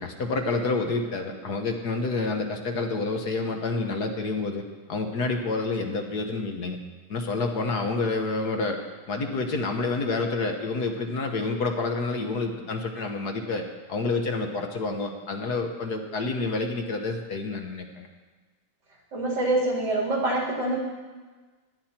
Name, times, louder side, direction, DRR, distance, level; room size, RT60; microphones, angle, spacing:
voice 1, 0.0-4.6 4.9-6.8 7.1-8.8 9.1-18.1, left 3 dB, 60° left, 4 dB, 1.7 m, -28 dB
voice 2, 19.1-20.8, right 2 dB, 65° right, -4 dB, 4.2 m, -25 dB
18.5 x 12.0 x 4.4 m, 1.3 s
omnidirectional pair, 2.0 m